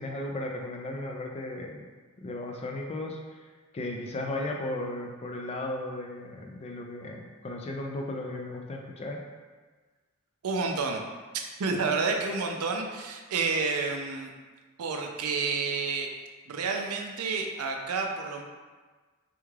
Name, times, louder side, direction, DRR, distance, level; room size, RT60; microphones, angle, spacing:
voice 1, 0.0-1.9 2.2-9.2, left 1 dB, 30° left, 1 dB, 0.3 m, -35 dB
voice 2, 10.4-11.0 11.6-14.3 14.8-16.1 16.5-18.4, right 4 dB, 80° right, 3 dB, 0.4 m, -29 dB
3.4 x 2.3 x 3.2 m, 1.4 s
head